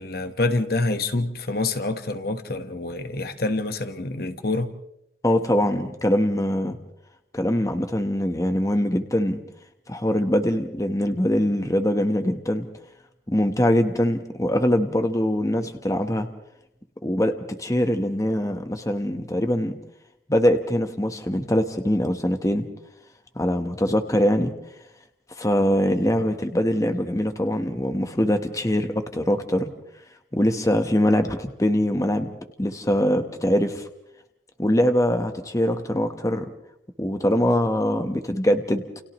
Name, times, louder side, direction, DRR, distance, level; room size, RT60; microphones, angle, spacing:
voice 1, 0.0-4.7, left 2 dB, 55° left, 1.4 m, -26 dB
voice 2, 5.2-6.8 7.3-9.4 9.9-12.6 13.3-16.3 17.0-19.8 20.3-22.7 23.3-24.5 25.4-29.7 30.3-32.3 32.6-33.9 34.6-36.5 37.0-38.8, equal, 20° left, 1.2 m, -23 dB
29.5 x 29.5 x 3.1 m
head